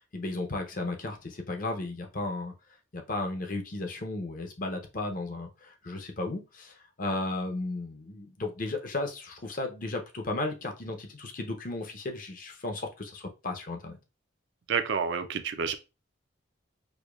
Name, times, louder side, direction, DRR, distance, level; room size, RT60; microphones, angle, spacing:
voice 1, 0.1-2.5 2.9-14.0, left 2 dB, 40° left, 0.6 m, -34 dB
voice 2, 14.7-15.7, right 6 dB, 60° right, 0.4 m, -29 dB
4.9 x 2.2 x 2.3 m
head